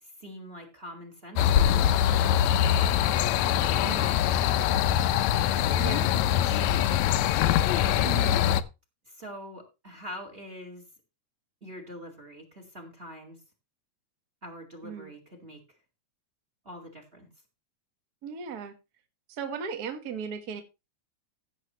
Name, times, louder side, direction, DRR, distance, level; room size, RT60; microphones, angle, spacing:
voice 1, 0.0-5.6 6.4-7.4 9.1-10.8 11.6-13.4 14.4-15.6 16.6-17.3, equal, 25° right, 5 dB, 1.8 m, -45 dB
sound 1, 1.4-8.6, left 10 dB, 75° left, 1.8 m, -23 dB
voice 2, 3.8-4.1 5.8-6.1 8.0-8.4 14.8-15.1 18.2-18.7 19.3-20.6, right 6 dB, 45° right, 7 dB, 1.4 m, -36 dB
15.5 x 7.4 x 3.0 m, 0.26 s
omnidirectional pair, 3.4 m